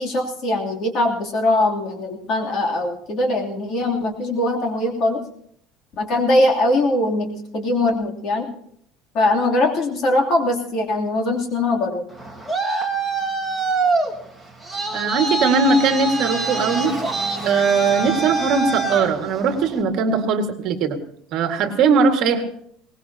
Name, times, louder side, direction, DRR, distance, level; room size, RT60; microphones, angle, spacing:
voice 1, 0.0-5.2 6.0-8.5 9.1-12.0, left 1 dB, 45° left, 0 dB, 3.0 m, -21 dB
Traffic noise roadway noise, 12.1-19.8, right 3 dB, 5° left, 1.9 m, -25 dB
voice 2, 14.9-16.9 17.4-21.0 21.3-22.4, right 5 dB, 50° right, 4 dB, 1.9 m, -19 dB
22.0 x 19.5 x 2.9 m, 0.65 s
cardioid pair, 155°, 0 cm